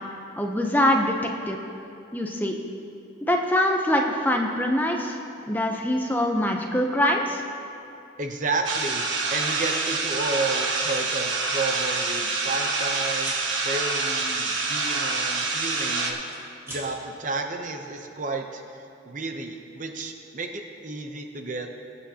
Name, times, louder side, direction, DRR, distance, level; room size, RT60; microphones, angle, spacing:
voice 1, 0.4-1.2 1.5-1.6 2.1-2.6 3.3-7.4, left 1 dB, 10° left, 2 dB, 0.6 m, -23 dB
voice 2, 8.2-16.2 16.7-21.8, right 3 dB, 40° right, 4 dB, 0.7 m, -32 dB
sound 1, 8.6-16.1, right 3 dB, 80° right, 1.2 m, -26 dB
sound 2, 12.8-12.9 13.2-13.5 15.0-15.8 16.1-16.9, equal, 15° right, 3.0 m, -41 dB
22.0 x 8.4 x 2.8 m, 2.7 s
head